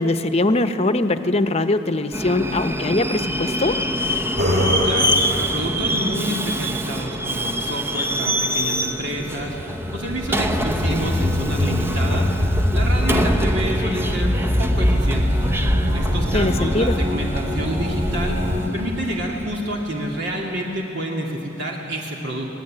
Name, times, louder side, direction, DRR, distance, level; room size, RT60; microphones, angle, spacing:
voice 1, 0.0-3.8 16.3-17.0, left 2 dB, 35° left, 9 dB, 1.0 m, -21 dB
Subway metro underground, 2.1-20.6, equal, 10° right, 0.8 m, -26 dB
sound 1, 4.4-5.5 9.3-18.7, left 1 dB, 40° right, 3.1 m, -22 dB
voice 2, 4.8-9.5 9.9-12.3 12.7-14.3 14.6-15.4 15.9-18.4 18.7-22.5, right 1 dB, 60° right, -2 dB, 2.7 m, -28 dB
27.0 x 19.0 x 9.0 m, 3.0 s
head